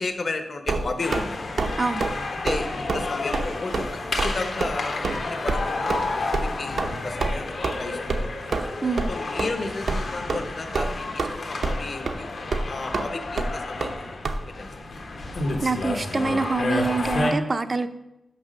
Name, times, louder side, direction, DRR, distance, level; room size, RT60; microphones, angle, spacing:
voice 1, 0.0-1.5 2.4-8.5 9.1-12.3 12.7-14.2 14.5-14.7, left 3 dB, 45° left, 7 dB, 0.9 m, -33 dB
sound 1, 0.7-1.3 1.6-1.7 2.0-2.2 2.5-2.6 2.9-3.0 3.3-3.5 3.7-3.9 4.2-4.3 4.6-4.7 5.0-5.2 5.5-5.6 5.9-6.1 6.3-6.5 6.8-6.9 7.2-7.3 7.6-7.7 8.1-8.2 8.5-8.7 9.0-9.1 9.4-9.5 9.9-10.0 10.3-10.4 10.7-11.3 11.6-11.8 12.1-12.2 12.5-12.6 12.9-13.1 13.4-13.5 13.8-13.9 14.2-14.4, right 3 dB, 70° right, 0.7 m, -26 dB
sound 2, 1.0-17.3, left 3 dB, 65° left, 1.2 m, -31 dB
voice 2, 8.8-9.1 15.6-17.9, right 3 dB, 30° right, 11 dB, 0.5 m, -25 dB
6.1 x 5.8 x 6.4 m, 0.91 s
wide cardioid pair, 125°, 0 cm